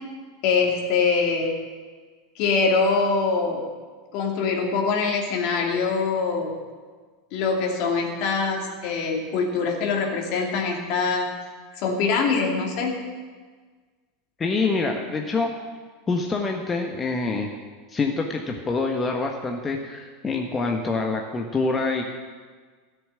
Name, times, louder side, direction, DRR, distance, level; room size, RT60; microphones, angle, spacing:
voice 1, 0.4-1.5 2.4-3.6 4.1-6.5 7.3-11.3 11.8-13.0, left 4 dB, 60° left, 1 dB, 2.6 m, -23 dB
voice 2, 14.4-15.5 16.1-17.5 17.9-22.0, left 3 dB, 25° left, 2 dB, 1.4 m, -26 dB
13.5 x 7.1 x 9.0 m, 1.5 s
hypercardioid pair, 90°, 0 cm